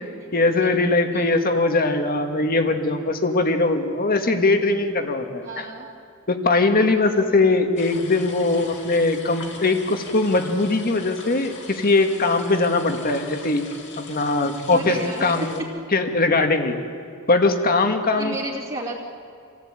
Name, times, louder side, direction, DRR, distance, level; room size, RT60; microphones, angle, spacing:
voice 1, 0.3-5.4 6.3-13.6 14.0-15.6 15.9-16.8 17.3-18.4, left 3 dB, 45° left, 6 dB, 1.8 m, -21 dB
voice 2, 5.4-5.9 7.1-7.2 14.7-15.3 18.1-19.0, right 1 dB, 30° right, -7 dB, 2.6 m, -32 dB
sound 1, 7.8-15.6, left 4 dB, 60° left, 2.6 m, -41 dB
26.5 x 16.0 x 9.0 m, 2.4 s
head